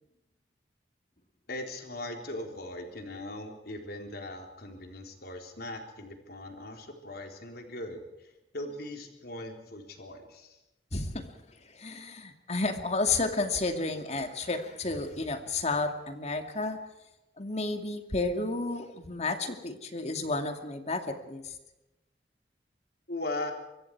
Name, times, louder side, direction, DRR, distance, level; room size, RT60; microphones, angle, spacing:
voice 1, 1.5-10.6 23.1-23.5, left 1 dB, 60° left, 4 dB, 3.8 m, -39 dB
voice 2, 10.9-11.2 11.7-16.8 17.4-21.5, left 3 dB, 40° left, 6 dB, 2.5 m, -31 dB
24.5 x 23.5 x 4.8 m, 0.96 s
head